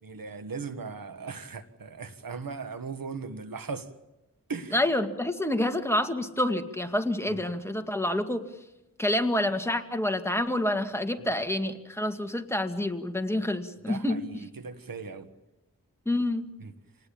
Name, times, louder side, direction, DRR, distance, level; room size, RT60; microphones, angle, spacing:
voice 1, 0.0-3.9 4.5-4.8 7.3-7.4 11.2-11.3 13.4-13.5 13.9-15.3 16.6-16.7, right 4 dB, 85° right, 10 dB, 1.6 m, -38 dB
voice 2, 4.7-8.4 9.0-14.2 16.1-16.5, left 1 dB, 10° left, 6 dB, 2.1 m, -28 dB
28.0 x 19.5 x 8.7 m, 0.95 s
wide cardioid pair, 65°, 34 cm